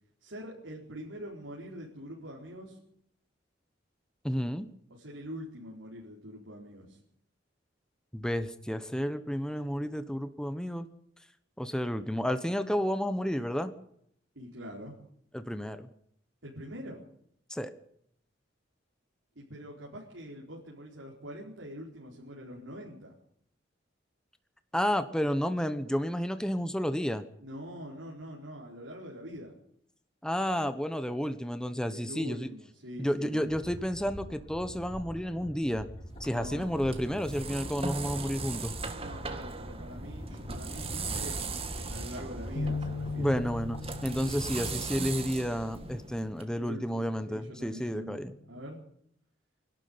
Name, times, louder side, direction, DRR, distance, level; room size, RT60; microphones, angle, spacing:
voice 1, 0.2-2.8 4.9-7.0 14.3-15.0 16.4-17.0 19.3-23.1 27.4-29.5 31.9-33.6 36.3-36.7 38.9-41.4 41.8-43.3 46.6-48.8, equal, 90° right, -3 dB, 4.6 m, -44 dB
voice 2, 4.2-4.7 8.1-10.9 11.6-13.7 15.3-15.9 17.5-17.7 24.7-27.2 30.2-32.5 33.0-35.9 36.2-38.7 43.2-48.3, equal, 5° left, 10 dB, 1.1 m, -31 dB
sound 1, 33.4-44.8, equal, 40° left, 5.9 m, -44 dB
sound 2, 36.1-46.4, right 3 dB, 30° right, 1.9 m, -39 dB
sound 3, 42.6-48.8, left 3 dB, 85° left, 0.9 m, -41 dB
24.5 x 12.0 x 9.6 m, 0.69 s
head